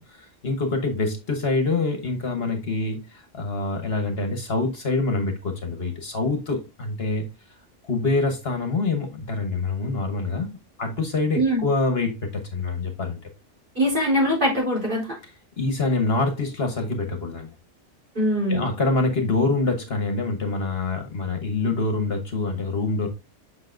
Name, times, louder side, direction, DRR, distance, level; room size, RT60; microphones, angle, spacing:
voice 1, 0.0-7.2 7.8-13.2 15.6-17.5 18.5-23.1, left 3 dB, 55° left, 1.4 m, -25 dB
voice 2, 11.3-11.7 13.8-15.2 18.1-18.7, equal, 40° right, 4.1 m, -22 dB
8.2 x 5.8 x 2.6 m
omnidirectional pair, 1.3 m